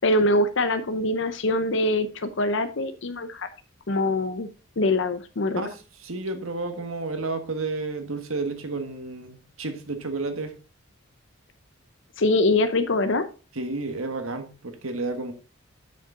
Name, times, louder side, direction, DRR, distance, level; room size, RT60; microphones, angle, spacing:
voice 1, 0.0-3.5 3.9-4.5 4.8-5.6 12.2-13.3, left 2 dB, 60° left, 0.6 m, -23 dB
voice 2, 6.0-10.5 13.5-15.3, right 3 dB, 80° right, 1.4 m, -31 dB
7.8 x 6.6 x 3.8 m
head